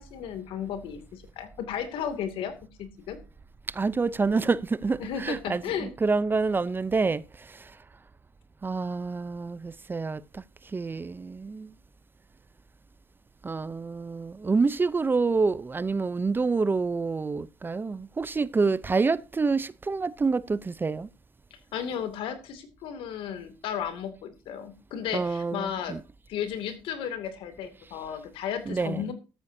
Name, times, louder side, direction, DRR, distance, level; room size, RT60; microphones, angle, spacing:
voice 1, 0.0-3.2 5.0-5.9 21.5-26.0 26.3-29.1, left 8 dB, 75° left, 2.5 m, -34 dB
voice 2, 3.7-7.2 8.6-10.4 10.7-11.7 13.4-21.1 25.1-26.0 28.7-29.1, right 4 dB, 25° right, 0.6 m, -27 dB
14.5 x 13.5 x 2.7 m
cardioid pair, 95°, 9 cm